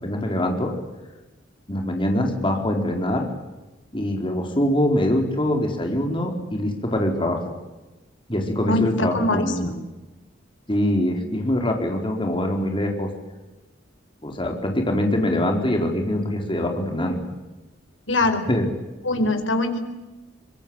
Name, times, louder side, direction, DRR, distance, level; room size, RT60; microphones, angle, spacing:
voice 1, 0.0-0.7 1.7-3.2 3.9-7.4 8.3-9.7 10.7-13.1 14.2-17.2 18.5-18.7, left 1 dB, 25° left, 3 dB, 4.3 m, -23 dB
voice 2, 8.7-9.8 18.1-18.5 19.0-19.8, left 2 dB, 80° left, 7 dB, 4.5 m, -23 dB
24.5 x 22.5 x 8.9 m, 1.1 s
head